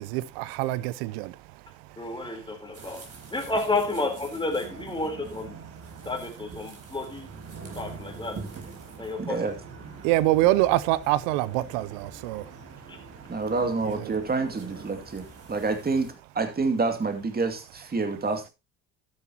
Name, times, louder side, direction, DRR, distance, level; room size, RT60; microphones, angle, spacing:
voice 1, 0.0-1.4 10.0-12.6 13.8-14.1, right 17 dB, 80° right, 0.8 m, -25 dB
voice 2, 2.0-3.0 3.3-5.6 6.1-7.3 7.8-8.4 9.0-9.5 12.9-13.0, left 2 dB, 15° left, 3.9 m, -31 dB
sound 1, 2.7-16.1, right 4 dB, 40° right, 4.1 m, -44 dB
voice 3, 9.2-9.6 13.3-18.5, right 3 dB, 25° right, 2.5 m, -28 dB
12.5 x 10.0 x 2.9 m
hypercardioid pair, 70°, 37 cm